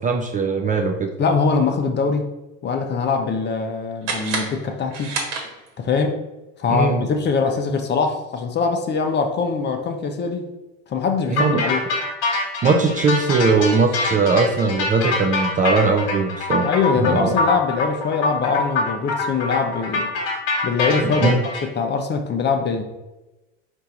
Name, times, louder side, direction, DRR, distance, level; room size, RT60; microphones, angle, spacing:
voice 1, 0.0-1.1 6.7-7.0 11.3-11.6 12.6-16.7 17.0-17.3 21.0-21.4, right 4 dB, 20° right, 3 dB, 0.4 m, -20 dB
voice 2, 1.2-2.3 2.6-5.1 5.8-6.2 6.6-10.5 10.9-11.8 16.6-20.1 20.6-22.8, left 5 dB, 30° left, 5 dB, 0.7 m, -22 dB
sound 1, 4.0-5.9, right 4 dB, 65° right, 1.2 m, -29 dB
sound 2, 11.4-21.6, left 3 dB, 55° left, 1.3 m, -24 dB
4.5 x 2.6 x 4.2 m, 1.0 s
hypercardioid pair, 80°, 37 cm